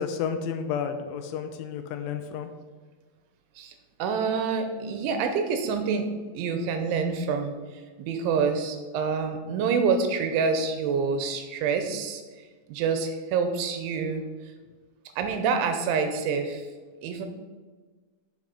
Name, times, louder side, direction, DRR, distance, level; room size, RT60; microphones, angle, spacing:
voice 1, 0.0-2.5, left 7 dB, 85° left, 7 dB, 3.0 m, -31 dB
voice 2, 4.0-6.1 6.3-14.5 15.2-16.7 17.0-17.3, right 5 dB, 85° right, 6 dB, 3.0 m, -27 dB
7.7 x 7.3 x 5.3 m, 1.4 s
omnidirectional pair, 5.7 m